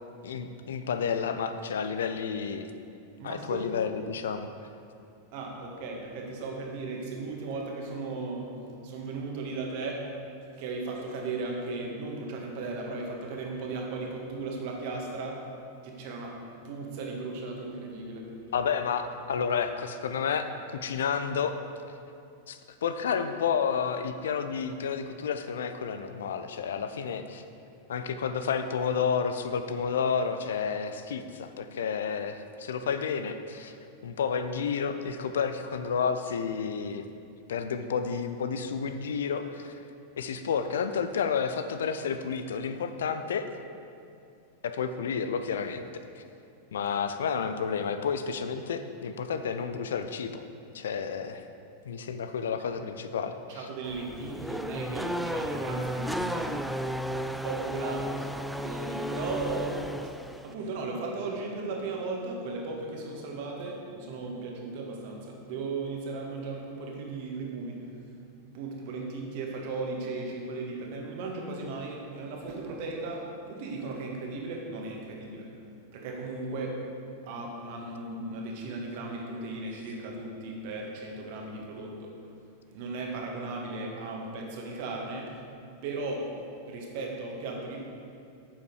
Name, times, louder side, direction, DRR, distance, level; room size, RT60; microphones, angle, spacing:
voice 1, 0.2-2.7 3.2-4.5 18.5-21.5 22.5-27.4 27.9-33.8 34.0-37.1 37.5-39.8 40.2-43.5 44.6-45.9 46.2-46.3 46.7-50.4 50.7-51.4 51.9-53.7, left 6 dB, 65° left, 9 dB, 0.5 m, -31 dB
voice 2, 3.2-3.6 5.3-8.5 8.8-10.1 10.5-15.5 15.8-18.3 53.5-56.6 57.4-67.9 68.5-75.5 75.9-76.8 77.2-82.1 82.7-85.4 85.8-86.3 86.7-87.8, right 3 dB, 50° right, 0 dB, 1.7 m, -36 dB
Race car auto racing / Accelerating revving vroom, 53.8-60.5, equal, ahead, 0.3 m, -34 dB
9.3 x 7.4 x 4.9 m, 2.5 s
figure-of-eight pair, 90°, 0 cm